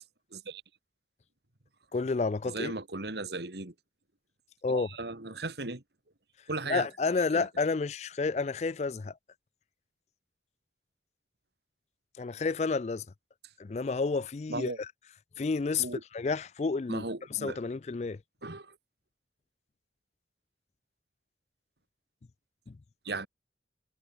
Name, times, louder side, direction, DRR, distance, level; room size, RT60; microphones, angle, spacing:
voice 1, 1.9-2.7 4.6-4.9 6.6-9.1 12.2-13.0 13.6-14.9 15.4-15.9 16.1-17.0 17.3-18.2 22.7-22.8, left 4 dB, 40° left, 0.4 m, -30 dB
voice 2, 2.5-3.7 4.7-5.8 6.5-6.9 7.3-7.5 14.5-14.8 15.8-16.0 16.9-17.6 18.4-18.7 23.1-23.3, right 2 dB, 70° right, 2.2 m, -36 dB
head